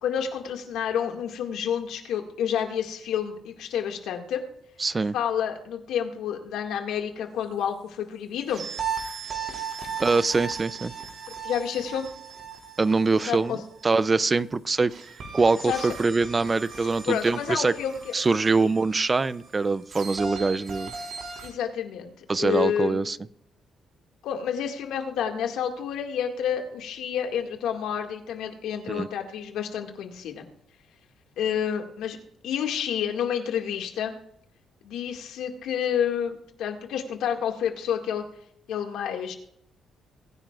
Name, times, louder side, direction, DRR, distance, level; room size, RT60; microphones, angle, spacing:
voice 1, 0.0-4.4 5.0-8.6 11.4-12.1 13.3-13.6 15.6-15.9 17.0-18.1 18.6-18.7 21.4-23.0 24.2-30.4 31.4-32.2 32.4-34.1 34.8-38.2 38.7-39.3, left 8 dB, 85° left, 4 dB, 2.0 m, -29 dB
voice 2, 4.8-5.1 10.0-10.9 12.8-13.6 13.8-14.9 15.3-17.7 18.1-20.9 22.3-23.2 28.9-29.1, right 3 dB, 30° right, 17 dB, 0.5 m, -23 dB
sound 1, 8.5-14.1 14.9-21.5, right 6 dB, 60° right, 4.0 m, -37 dB
23.0 x 10.0 x 2.4 m, 0.72 s
cardioid pair, 90°, 0 cm